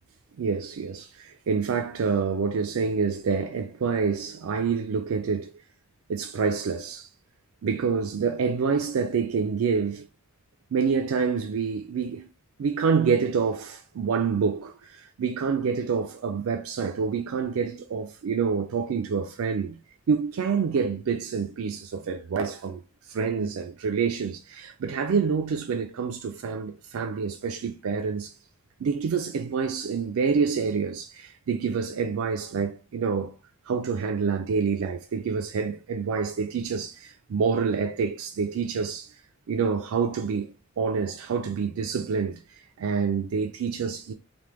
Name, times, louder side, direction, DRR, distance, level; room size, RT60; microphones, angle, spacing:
voice 1, 0.4-5.5 6.1-7.1 7.6-10.1 10.7-12.3 12.6-19.8 20.1-22.8 23.1-28.3 28.8-33.3 33.7-39.1 39.5-42.4 42.8-44.1, right 5 dB, 70° right, 0.4 m, -27 dB
3.4 x 2.1 x 3.0 m
head